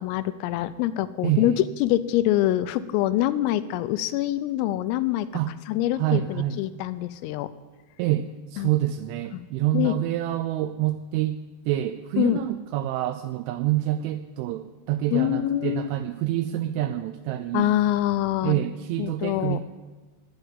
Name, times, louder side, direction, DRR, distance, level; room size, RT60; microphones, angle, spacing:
voice 1, 0.0-1.5 1.8-5.3 5.7-7.5 8.6-8.7 9.3-9.5 9.7-9.9 12.2-12.4 15.1-15.9 17.5-18.6 19.0-19.6, left 14 dB, 85° left, 14 dB, 3.2 m, -25 dB
voice 2, 1.2-1.6 5.3-5.5 6.0-6.6 8.0-17.7 18.4-19.6, right 14 dB, 85° right, 9 dB, 2.7 m, -27 dB
11.0 x 10.0 x 9.8 m, 1.3 s
omnidirectional pair, 6.0 m